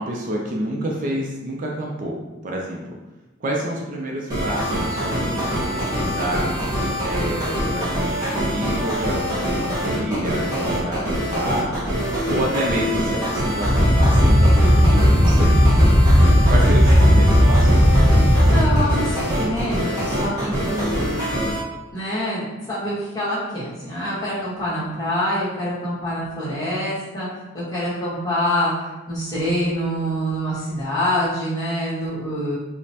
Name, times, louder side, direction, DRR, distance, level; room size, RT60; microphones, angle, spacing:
voice 1, 0.0-2.2 2.4-2.8 3.4-6.5 7.0-11.7 12.3-15.6 16.5-17.9, equal, 40° right, -1 dB, 0.4 m, -28 dB
sound 1, 4.3-21.6, equal, 20° right, 1.3 m, -24 dB
sound 2, 13.6-18.9, equal, ahead, 1.2 m, -15 dB
voice 2, 18.5-21.0 21.9-27.3 27.5-32.6, equal, 20° left, -9 dB, 1.3 m, -25 dB
5.0 x 2.1 x 2.8 m, 1.1 s
head